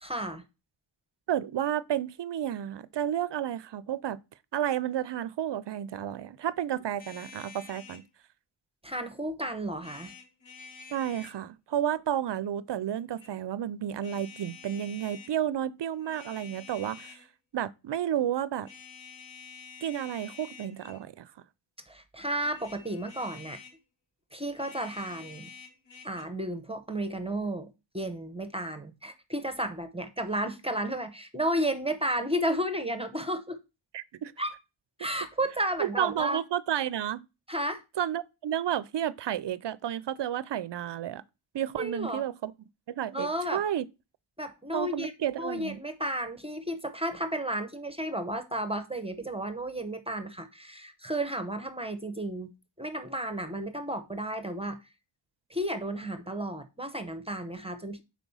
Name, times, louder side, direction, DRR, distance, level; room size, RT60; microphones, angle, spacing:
voice 1, 0.0-0.4 8.8-10.1 21.9-23.6 24.3-25.5 26.0-33.6 34.4-34.5 35.0-36.4 37.5-37.8 41.8-42.2 43.1-43.6 44.4-45.1 45.4-52.5 52.8-54.8 55.5-58.0, right 1 dB, 10° right, 0.7 m, -33 dB
voice 2, 1.3-4.2 4.5-8.0 10.9-17.2 17.5-18.7 19.8-21.3 33.9-34.3 35.8-37.3 38.0-41.2 41.5-42.5 42.9-43.9 44.7-45.8, right 10 dB, 60° right, 0.5 m, -31 dB
sound 1, 7.0-8.1 9.7-11.4 12.9-13.3 14.0-15.3 15.9-17.3 18.6-21.1 22.4-23.8 24.5-26.2, left 5 dB, 65° left, 1.6 m, -49 dB
5.9 x 4.3 x 5.4 m
wide cardioid pair, 130°, 49 cm